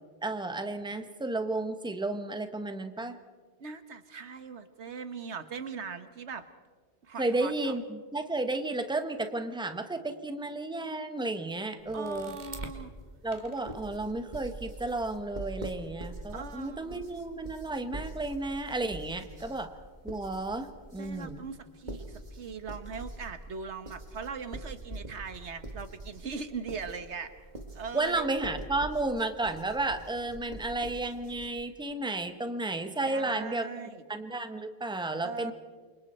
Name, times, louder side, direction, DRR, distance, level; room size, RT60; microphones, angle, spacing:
voice 1, 0.2-3.2 7.2-12.4 13.2-19.7 20.0-21.4 27.9-33.7 34.1-35.5, right 2 dB, 5° right, 8 dB, 1.1 m, -32 dB
voice 2, 3.6-6.5 7.0-7.7 11.9-12.9 16.3-17.1 21.0-27.3 27.7-28.3 33.1-34.0 35.2-35.5, right 5 dB, 85° right, 10 dB, 1.5 m, -40 dB
sound 1, 11.8-12.8 13.3-31.5, right 1 dB, 40° right, 2.2 m, -44 dB
29.0 x 25.0 x 4.4 m, 1.5 s
omnidirectional pair, 1.1 m